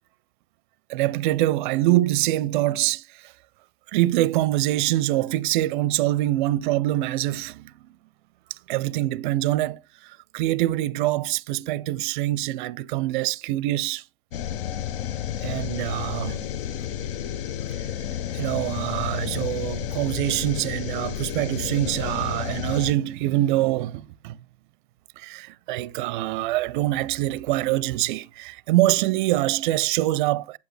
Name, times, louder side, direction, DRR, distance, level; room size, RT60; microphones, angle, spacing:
voice 1, 0.9-3.3 3.9-7.7 8.7-14.0 15.4-17.0 18.3-24.4 25.2-30.6, right 15 dB, 50° right, 0.5 m, -25 dB
sound 1, 14.3-22.9, left 10 dB, 55° left, 0.7 m, -31 dB
8.4 x 8.1 x 3.3 m
hypercardioid pair, 135°, 33 cm